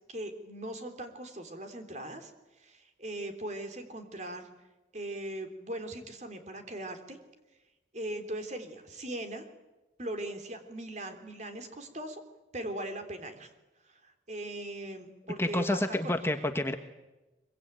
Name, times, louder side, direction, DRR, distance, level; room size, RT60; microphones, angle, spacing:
voice 1, 0.1-2.3 2.6-4.5 4.9-7.2 7.9-9.4 10.0-12.2 12.5-13.5 13.9-16.2, right 1 dB, 40° right, 7 dB, 3.3 m, -39 dB
voice 2, 15.4-16.7, left 1 dB, 15° left, 7 dB, 1.2 m, -29 dB
24.0 x 23.5 x 9.1 m, 1.1 s
head